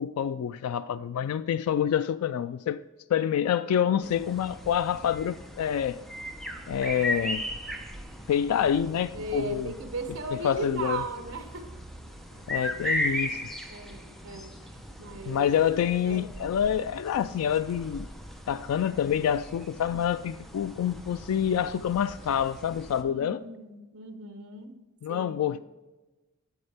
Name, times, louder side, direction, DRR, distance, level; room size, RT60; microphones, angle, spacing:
voice 1, 0.0-2.8 3.1-6.0 6.7-7.4 8.3-9.7 10.3-11.0 12.5-13.4 15.3-18.1 18.5-23.4 25.0-25.6, left 9 dB, 85° left, 0.3 m, -27 dB
sound 1, 4.0-23.0, left 1 dB, ahead, 0.8 m, -38 dB
voice 2, 6.8-7.1 9.1-11.7 13.7-15.5 16.0-16.3 23.0-24.8 25.1-25.4, right 2 dB, 70° right, 0.9 m, -37 dB
9.4 x 7.9 x 3.4 m
head